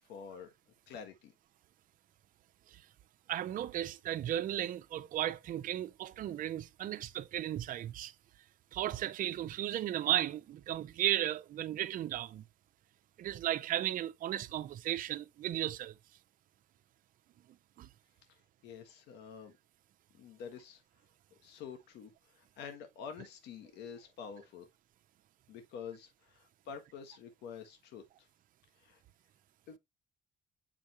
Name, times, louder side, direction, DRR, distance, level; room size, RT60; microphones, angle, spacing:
voice 1, 0.1-0.5 0.9-1.3 18.6-19.5 20.1-20.8 21.4-24.7 25.5-28.3 28.8-29.0 29.7-29.8, left 7 dB, 85° left, 1.4 m, -48 dB
voice 2, 3.3-8.1 8.7-12.4 13.2-15.9 17.8-17.9, right 12 dB, 55° right, 0.6 m, -35 dB
7.3 x 5.1 x 2.9 m
cardioid pair, 110°, 17 cm